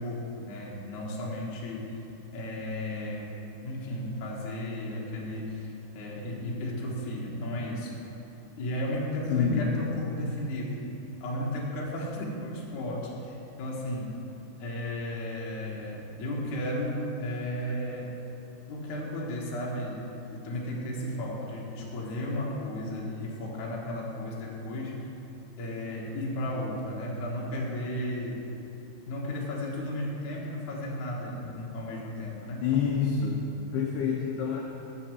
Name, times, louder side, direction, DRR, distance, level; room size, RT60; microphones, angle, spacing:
voice 1, 0.0-2.0 2.3-3.3 3.6-7.9 8.6-10.8 11.2-14.1 14.6-18.2 18.7-20.0 20.3-25.1 25.6-28.4 29.1-32.7, left 1 dB, 60° left, -3 dB, 2.1 m, -34 dB
voice 2, 9.3-9.7 32.6-34.6, left 6 dB, 80° left, -1 dB, 2.4 m, -27 dB
9.7 x 7.4 x 7.5 m, 2.9 s
omnidirectional pair, 5.6 m